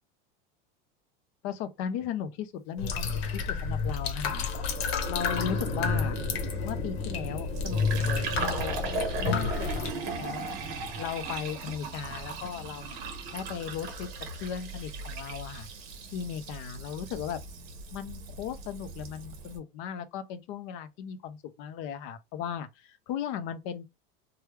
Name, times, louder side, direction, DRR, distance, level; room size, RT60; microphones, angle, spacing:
voice 1, 1.4-3.1 3.3-4.5 5.1-6.2 6.6-8.8 9.2-10.6 11.0-13.0 13.3-14.1 14.4-15.7 16.1-17.4 17.9-23.9, left 8 dB, 45° left, 0.6 m, -36 dB
sound 1, 2.8-9.9, left 5 dB, 85° left, 1.0 m, -30 dB
sound 2, 4.1-15.3, right 2 dB, 20° right, 0.6 m, -41 dB
Fill (with liquid), 7.1-19.6, right 3 dB, 40° right, 1.0 m, -38 dB
3.2 x 2.3 x 3.1 m
supercardioid pair, 155°, 30 cm